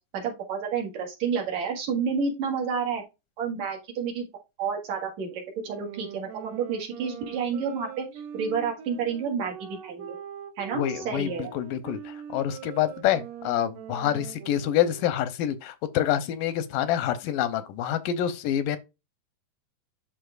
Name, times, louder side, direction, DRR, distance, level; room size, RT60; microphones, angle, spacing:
voice 1, 0.1-3.0 3.4-4.3 4.6-10.2 10.6-11.5, right 6 dB, 60° right, 2.8 m, -30 dB
sound 1, 5.6-15.3, right 9 dB, 75° right, 2.7 m, -42 dB
voice 2, 10.7-18.8, left 11 dB, 85° left, 2.3 m, -27 dB
11.5 x 3.9 x 2.4 m
omnidirectional pair, 3.9 m